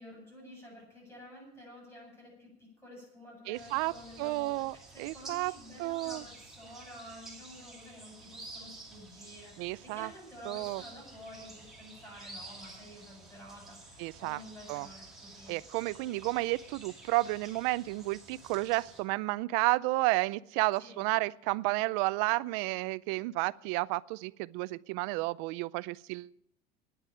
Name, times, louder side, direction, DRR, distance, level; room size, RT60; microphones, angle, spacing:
voice 1, 0.0-15.6 20.8-21.0, equal, 15° left, -1 dB, 7.8 m, -51 dB
sound 1, 3.5-19.0, right 2 dB, ahead, 2.9 m, -51 dB
voice 2, 3.5-3.9 4.2-5.5 5.8-6.2 9.6-10.1 10.5-10.8 14.0-14.4 14.7-14.9 15.5-26.3, right 21 dB, 80° right, 19 dB, 0.5 m, -31 dB
10.0 x 9.9 x 9.2 m, 0.76 s
cardioid pair, 170°, 20 cm